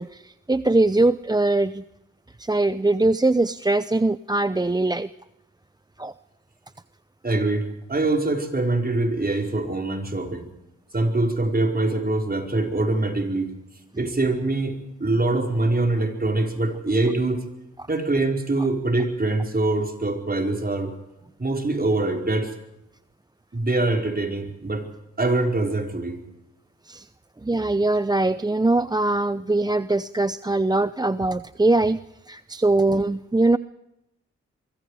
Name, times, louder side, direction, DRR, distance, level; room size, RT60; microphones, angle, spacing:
voice 1, 0.0-1.8 2.4-5.1 6.0-6.1 26.9-27.1 27.4-32.0 32.3-33.6, right 2 dB, 15° right, 14 dB, 0.7 m, -22 dB
voice 2, 7.2-10.5 10.9-13.5 14.0-17.4 17.9-20.9 21.4-22.5 23.5-24.9 25.2-26.2, right 2 dB, 30° right, 3 dB, 5.1 m, -24 dB
24.5 x 24.0 x 5.0 m, 0.88 s
cardioid pair, 55°, 30 cm